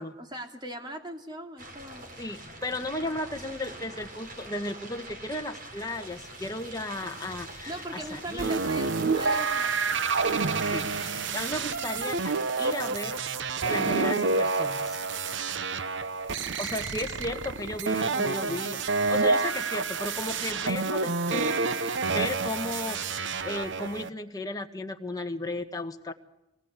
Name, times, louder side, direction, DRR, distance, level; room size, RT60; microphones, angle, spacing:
voice 1, 0.0-2.1 7.7-10.0, right 1 dB, 20° right, 4 dB, 2.8 m, -40 dB
sound 1, 1.6-12.9, right 2 dB, 45° right, 5.6 m, -44 dB
voice 2, 2.2-8.5 10.6-12.3 12.6-13.2 13.6-15.0 16.6-26.1, left 2 dB, 20° left, 5 dB, 1.6 m, -35 dB
sound 2, 8.4-24.1, right 4 dB, 65° right, 0.9 m, -28 dB
25.0 x 20.0 x 8.4 m, 0.92 s
head